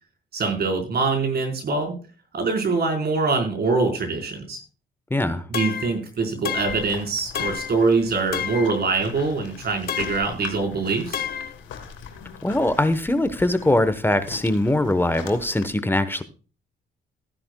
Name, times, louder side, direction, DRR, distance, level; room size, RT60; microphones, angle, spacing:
voice 1, 0.3-1.9 2.3-4.6 5.5-11.2, right 4 dB, 55° right, 4 dB, 4.5 m, -24 dB
voice 2, 5.1-5.4 12.4-16.2, left 1 dB, 10° left, 12 dB, 1.1 m, -22 dB
sound 1, 5.5-6.0 6.5-6.9 7.4-7.8 8.3-8.8 9.9-10.3 11.1-11.6, left 8 dB, 50° left, 0.7 m, -30 dB
sound 2, 6.5-15.7, left 6 dB, 85° left, 3.0 m, -41 dB
15.0 x 10.5 x 2.3 m, 0.35 s
cardioid pair, 90°, 20 cm